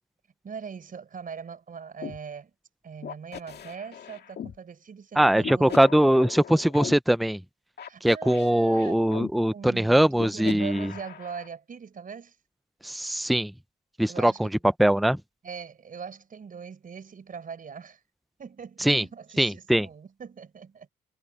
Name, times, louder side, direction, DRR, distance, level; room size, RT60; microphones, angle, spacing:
voice 1, 0.4-2.5 2.8-6.0 7.9-12.4 14.1-14.5 15.4-18.0 18.4-20.9, right 6 dB, 45° right, 4.8 m, -41 dB
sound 1, 2.0-2.2 3.0-4.6 5.4-6.9 7.8-9.3 10.2-11.5, left 8 dB, 55° left, 2.2 m, -38 dB
voice 2, 5.2-7.4 8.0-10.9 12.8-13.5 14.0-14.5 14.8-15.2 18.8-19.0 19.4-19.9, right 1 dB, ahead, 0.7 m, -21 dB
cardioid pair, 90°, 20 cm